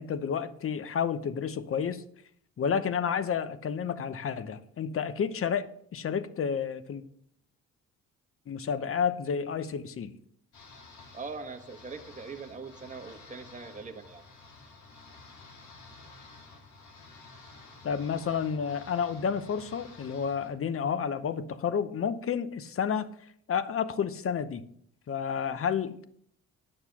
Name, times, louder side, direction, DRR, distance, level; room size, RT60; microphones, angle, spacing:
voice 1, 0.0-2.0 2.6-5.7 5.9-7.0 8.5-10.1 17.8-23.1 23.5-24.6 25.1-26.0, left 7 dB, 45° left, 14 dB, 0.9 m, -30 dB
sound 1, 10.5-20.5, left 3 dB, 75° left, 2.5 m, -51 dB
voice 2, 11.1-14.2, right 4 dB, 25° right, 4 dB, 1.3 m, -42 dB
9.8 x 6.6 x 5.8 m, 0.66 s
cardioid pair, 90°, 30 cm